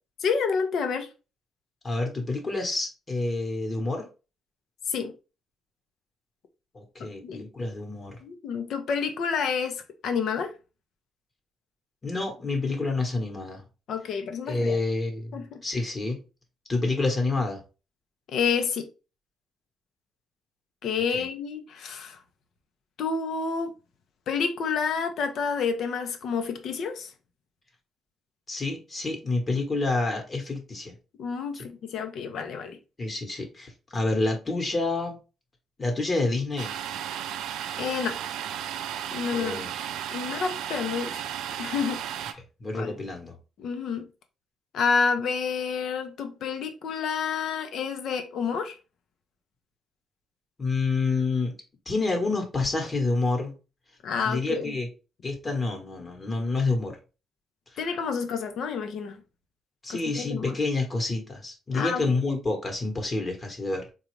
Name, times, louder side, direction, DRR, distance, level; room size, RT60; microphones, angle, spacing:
voice 1, 0.2-1.1 4.9-5.1 7.0-7.4 8.2-10.5 13.9-14.8 15.3-15.6 18.3-18.9 20.8-22.2 23.0-23.7 24.3-27.1 31.2-32.8 37.8-38.2 39.1-39.7 40.1-41.2 41.6-42.4 42.7-43.0 43.6-44.0 44.7-48.8 54.0-54.8 57.8-59.2 59.9-60.5 61.7-62.2, left 6 dB, 70° left, 0.6 m, -29 dB
voice 2, 1.8-4.1 6.7-8.2 12.0-13.6 14.5-16.2 16.7-17.6 21.1-21.3 28.5-30.9 31.5-31.7 33.0-35.1 35.8-36.7 39.3-39.7 42.6-43.4 50.6-51.5 51.9-53.5 54.2-54.9 55.2-57.0 59.8-63.9, left 3 dB, 30° left, 1.1 m, -28 dB
Domestic sounds home sounds, 36.6-42.3, right 10 dB, 85° right, 0.3 m, -34 dB
3.8 x 2.3 x 3.1 m
cardioid pair, 90°, 0 cm